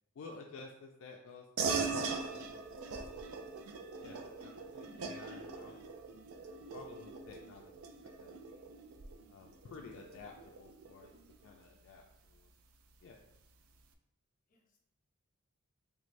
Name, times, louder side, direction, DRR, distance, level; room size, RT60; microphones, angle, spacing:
voice 1, 0.1-3.4 4.0-5.8 6.7-8.7 9.3-11.1 11.4-12.5 13.0-13.2, left 4 dB, 65° left, 1 dB, 0.3 m, -53 dB
sound 1, 1.6-11.4, right 4 dB, 90° right, 0.4 m, -41 dB
voice 2, 4.0-4.5 4.8-5.1 5.5-5.8 14.5-14.8, left 2 dB, 40° left, 1 dB, 0.7 m, -64 dB
3.5 x 3.1 x 2.5 m, 0.85 s
head